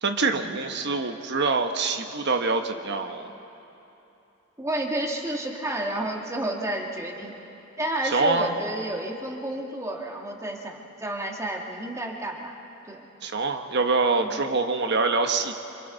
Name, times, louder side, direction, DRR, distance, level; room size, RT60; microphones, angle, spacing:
voice 1, 0.0-3.3 8.0-8.5 13.2-15.5, right 3 dB, 55° right, 6 dB, 1.1 m, -25 dB
voice 2, 4.6-7.3 7.8-12.6 12.9-13.1 14.2-14.4, right 1 dB, 15° right, -1 dB, 1.9 m, -31 dB
27.0 x 26.5 x 4.0 m, 2.9 s
head